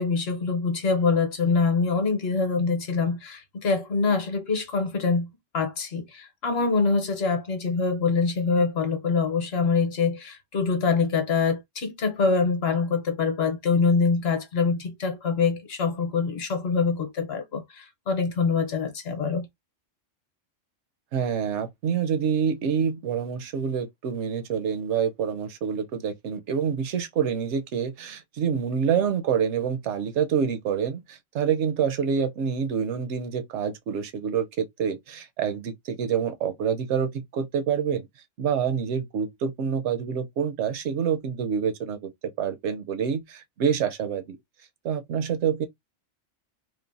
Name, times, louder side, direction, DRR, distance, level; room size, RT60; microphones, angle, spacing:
voice 1, 0.0-5.3 5.5-19.5, left 4 dB, 60° left, 1.0 m, -24 dB
voice 2, 21.1-38.1 38.4-44.4 44.8-45.7, right 7 dB, 70° right, 0.8 m, -27 dB
3.1 x 2.1 x 2.5 m
omnidirectional pair, 1.2 m